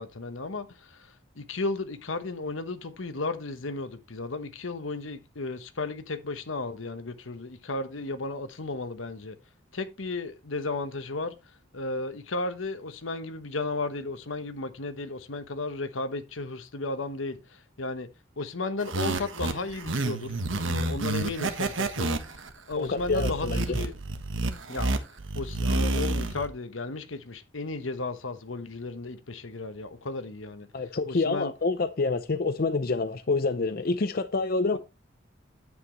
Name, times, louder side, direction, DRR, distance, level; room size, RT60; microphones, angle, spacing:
voice 1, 0.0-9.4 9.7-11.3 11.7-18.1 18.4-20.3 20.6-22.2 22.7-23.9 24.7-25.0 25.3-30.7 31.1-31.5 34.7-34.8, left 3 dB, 80° left, 1.2 m, -34 dB
sound 1, 18.8-26.5, right 2 dB, 80° right, 1.3 m, -29 dB
voice 2, 22.8-23.6 30.7-34.8, left 3 dB, 50° left, 0.6 m, -27 dB
9.7 x 8.4 x 3.1 m
head